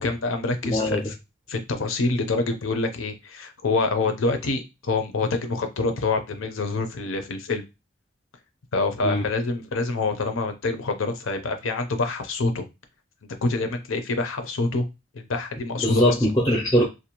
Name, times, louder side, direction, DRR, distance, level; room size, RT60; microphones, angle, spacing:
voice 1, 0.0-1.1 1.5-7.6 8.7-12.6 13.4-14.9 15.1-16.1, left 3 dB, 90° left, 7 dB, 0.6 m, -26 dB
voice 2, 0.6-1.0 9.0-9.2 15.8-16.9, equal, 20° left, 1 dB, 0.5 m, -21 dB
2.6 x 2.1 x 2.9 m, 0.25 s
head